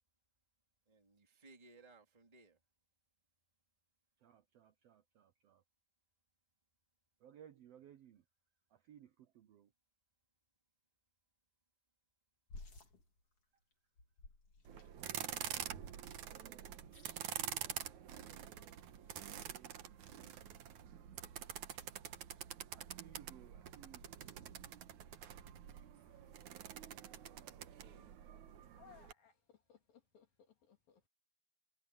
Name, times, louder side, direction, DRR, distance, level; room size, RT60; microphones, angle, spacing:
voice 1, 0.9-2.6 27.7-28.2, right 3 dB, 10° right, 2.9 m, -63 dB
voice 2, 4.2-5.6 7.2-8.2 8.7-9.7 16.0-16.7 17.4-18.9 19.4-20.4 21.8-22.3 22.7-24.3, right 10 dB, 80° right, 1.4 m, -62 dB
sound 1, 12.5-15.3 15.5-15.6 15.8-18.2 18.5-20.5 21.1-23.2 23.9-24.8 25.1-25.6 25.9-26.8, left 3 dB, 45° left, 4.4 m, -61 dB
sound 2, 14.6-29.1, right 10 dB, 65° right, 2.5 m, -47 dB
voice 3, 28.8-31.1, left 9 dB, 85° left, 5.2 m, -64 dB
omnidirectional pair, 4.0 m